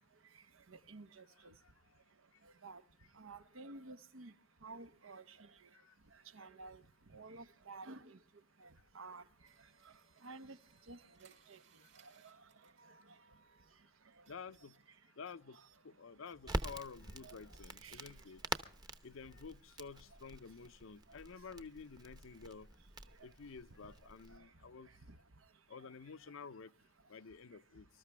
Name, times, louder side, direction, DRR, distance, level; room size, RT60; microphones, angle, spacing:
voice 1, 0.3-1.5 2.4-2.8 3.1-4.3 4.6-5.7 6.1-6.8 7.1-8.2 8.6-9.2 9.8-9.9 10.2-10.6 10.9-11.6 12.0-13.2 14.2-14.3 16.5-16.6 17.2-17.4 17.8-18.2 21.1-21.2 23.8-23.9 24.3-24.5 25.1-25.2 25.8-25.9, right 3 dB, 85° right, 1.0 m, -53 dB
voice 2, 1.3-1.7 3.0-3.1 5.8-5.9 14.3-14.8 15.2-18.4 19.0-22.7 23.2-24.9 25.7-26.7 27.1-27.9, left 5 dB, 80° left, 0.7 m, -51 dB
sound 1, 9.4-13.8 14.2-14.8 15.2-15.8 16.2-16.8 17.2-17.8 18.2-18.3, right 7 dB, 70° right, 5.4 m, -68 dB
Crackle, 16.4-24.4, right 1 dB, 20° right, 0.9 m, -46 dB
25.0 x 13.5 x 3.4 m
head